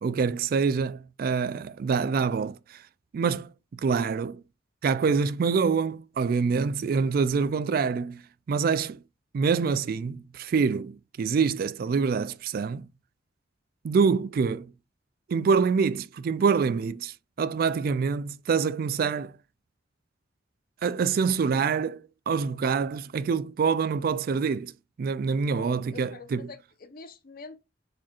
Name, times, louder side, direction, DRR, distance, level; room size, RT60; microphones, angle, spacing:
voice 1, 0.0-2.8 3.1-4.4 4.8-8.2 8.5-9.0 9.3-12.9 13.8-14.7 15.3-19.3 20.8-24.7 25.0-26.5, right 5 dB, 50° right, 0.3 m, -26 dB
voice 2, 25.5-27.6, left 3 dB, 50° left, 0.7 m, -45 dB
4.8 x 4.3 x 2.3 m
head